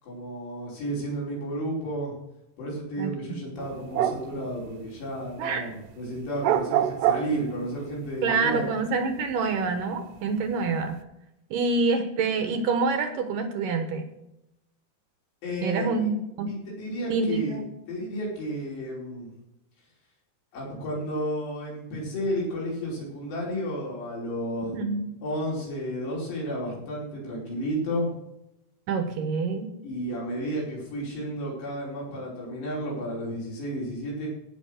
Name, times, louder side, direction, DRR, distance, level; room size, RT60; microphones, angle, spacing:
voice 1, 0.0-2.1 2.6-8.7 15.4-16.1 16.5-17.6 17.9-19.3 20.5-24.8 25.2-28.1 29.8-34.3, equal, 90° left, -4 dB, 7.1 m, -32 dB
voice 2, 3.0-3.4 5.4-5.6 8.2-11.0 11.5-14.1 15.6-16.5 17.1-17.6 24.7-25.1 28.9-29.7, right 4 dB, 65° right, 6 dB, 2.4 m, -27 dB
sound 1, 3.6-5.4 5.7-7.8 8.1-9.8 10.2-11.0, right 11 dB, 85° right, 2.7 m, -27 dB
17.0 x 6.4 x 6.4 m, 0.86 s
omnidirectional pair, 4.7 m